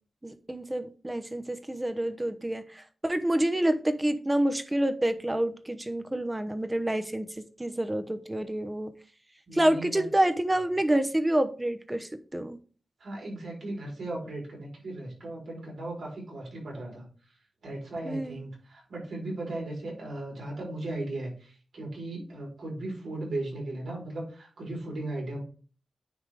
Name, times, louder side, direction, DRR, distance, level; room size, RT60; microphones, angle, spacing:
voice 1, 0.2-7.3 7.6-8.9 9.5-12.6 18.0-18.4, right 1 dB, 15° right, 9 dB, 0.8 m, -28 dB
voice 2, 9.5-10.0 13.0-17.0 17.6-25.4, right 2 dB, 80° right, -2 dB, 3.9 m, -37 dB
9.6 x 3.6 x 4.8 m, 0.39 s
wide cardioid pair, 95°, 0 cm